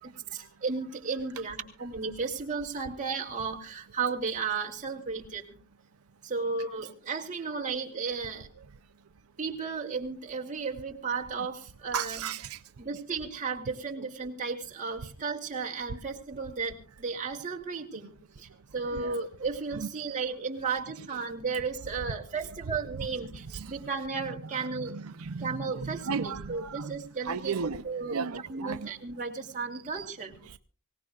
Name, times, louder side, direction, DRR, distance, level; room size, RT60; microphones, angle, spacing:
voice 1, 0.0-5.4 6.2-8.5 9.4-12.3 12.8-25.0 25.4-28.2 28.5-30.4, right 4 dB, 35° right, 1 dB, 2.7 m, -34 dB
voice 2, 11.9-12.6 18.9-19.2 20.0-20.2 23.5-23.7 24.9-26.9 27.2-27.8 28.1-28.9 30.0-30.1 30.5-30.6, right 6 dB, 85° right, 10 dB, 0.6 m, -35 dB
25.5 x 18.0 x 2.4 m, 0.38 s
head